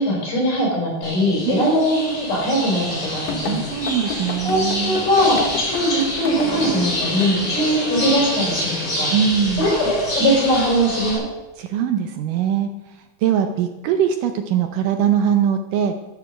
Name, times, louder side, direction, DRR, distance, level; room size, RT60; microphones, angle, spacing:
voice 1, 0.0-3.6 4.4-9.1 9.6-11.2, equal, 60° left, -4 dB, 6.1 m, -21 dB
sound 1, 1.0-11.1, equal, 25° left, 5.6 m, -27 dB
voice 2, 1.5-1.8 3.5-5.0 7.3-7.6 9.1-9.7 11.6-16.0, right 8 dB, 75° right, 6 dB, 2.1 m, -22 dB
sound 2, 3.3-6.8 7.2-7.3 7.6-7.8, left 5 dB, 90° left, 3.0 m, -31 dB
12.5 x 6.8 x 6.3 m, 1.0 s
omnidirectional pair, 4.2 m